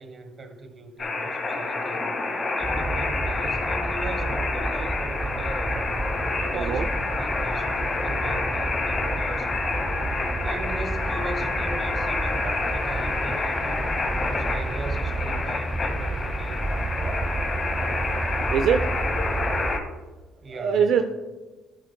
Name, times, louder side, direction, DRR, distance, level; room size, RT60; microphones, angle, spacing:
voice 1, 0.0-2.1 2.6-6.0 6.4-6.9 7.2-9.9 10.4-13.9 14.2-16.7 20.4-20.9, right 2 dB, 35° right, 8 dB, 1.2 m, -39 dB
sound 1, 1.0-19.8, left 3 dB, 35° left, 1.6 m, -28 dB
sound 2, 2.6-19.8, right 2 dB, 20° right, 0.5 m, -31 dB
voice 2, 6.5-6.9 18.5-18.8 20.5-21.0, right 7 dB, 70° right, 7 dB, 0.5 m, -22 dB
13.5 x 8.4 x 2.2 m, 1.2 s
cardioid pair, 95°, 0 cm